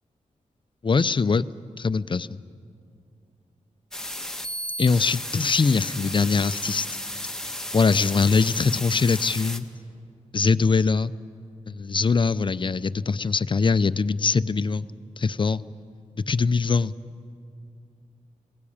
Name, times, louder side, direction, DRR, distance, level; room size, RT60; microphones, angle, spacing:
voice 1, 0.8-1.4 1.8-2.4 4.8-6.9 7.7-9.7 10.3-11.1 11.7-14.9 15.2-15.6 16.3-16.9, left 4 dB, 40° left, 16 dB, 0.5 m, -22 dB
sound 1, 3.9-9.6, left 1 dB, 5° left, 1.2 m, -34 dB
22.0 x 17.5 x 8.7 m, 2.4 s
wide cardioid pair, 85°, 13 cm